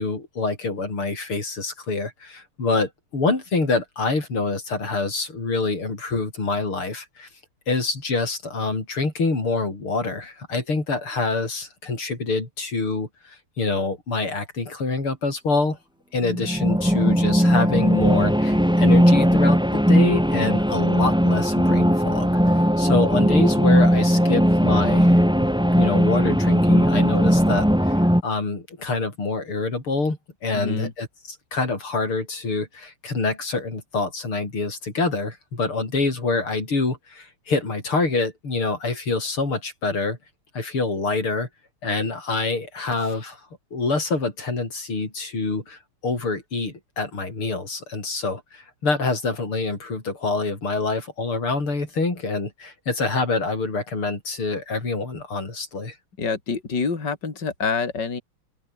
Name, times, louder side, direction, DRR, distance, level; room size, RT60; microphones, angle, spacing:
voice 1, 0.0-7.3 7.7-15.8 16.1-22.4 22.8-25.5 25.7-40.2 40.5-41.5 41.8-43.4 43.7-56.0, left 3 dB, 90° left, 6.6 m, -26 dB
sound 1, 16.2-28.2, equal, ahead, 5.9 m, -18 dB
voice 2, 30.5-30.9 56.2-58.2, left 5 dB, 55° left, 3.8 m, -26 dB
open air
omnidirectional pair, 2.3 m